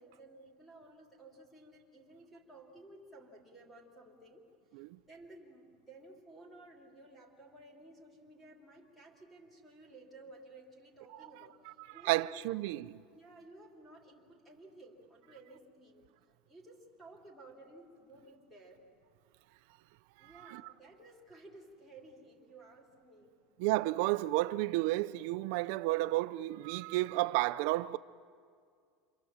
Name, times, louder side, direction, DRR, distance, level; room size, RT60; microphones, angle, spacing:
voice 1, 0.0-4.4 4.7-12.6 13.1-16.0 16.4-18.9 20.2-23.4, right 2 dB, 5° left, 3.2 m, -55 dB
voice 2, 12.0-13.0 20.5-20.6 23.6-28.0, right 18 dB, 55° right, 0.6 m, -31 dB
28.0 x 26.0 x 7.4 m
supercardioid pair, 180°, 0 cm